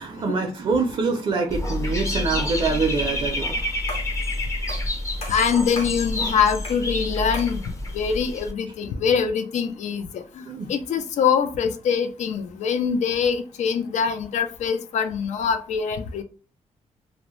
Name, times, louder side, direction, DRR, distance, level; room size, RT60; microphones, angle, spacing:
voice 1, 0.0-3.6 10.5-10.7, right 4 dB, 45° right, 4 dB, 0.4 m, -25 dB
Dog / Bird, 1.5-8.5, left 1 dB, 25° left, 0.5 m, -28 dB
sound 1, 3.9-4.2 4.7-4.9 5.2-6.0 6.6-6.9 7.3-7.6, left 1 dB, 60° left, 0.9 m, -36 dB
voice 2, 5.3-16.2, left 6 dB, 85° left, 8 dB, 0.4 m, -24 dB
2.6 x 2.0 x 2.9 m, 0.38 s
wide cardioid pair, 160°, 12 cm